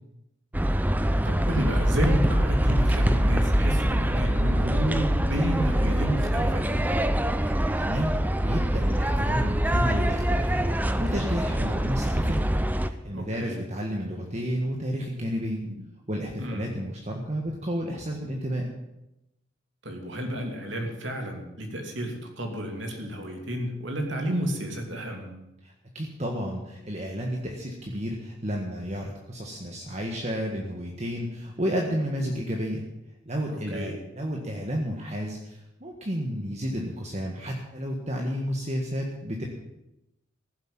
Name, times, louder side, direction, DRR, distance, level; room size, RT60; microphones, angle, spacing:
sound 1, 0.5-12.9, equal, 10° right, 0.6 m, -24 dB
voice 1, 1.2-6.9 13.1-13.6 15.6-15.8 16.4-16.7 19.8-25.3 33.5-34.0, equal, 70° right, 2 dB, 3.1 m, -31 dB
voice 2, 7.3-12.4 12.8-15.6 16.1-18.6 25.6-32.8 33.2-39.4, equal, 35° right, 0 dB, 1.6 m, -31 dB
15.0 x 8.0 x 9.0 m, 0.91 s
head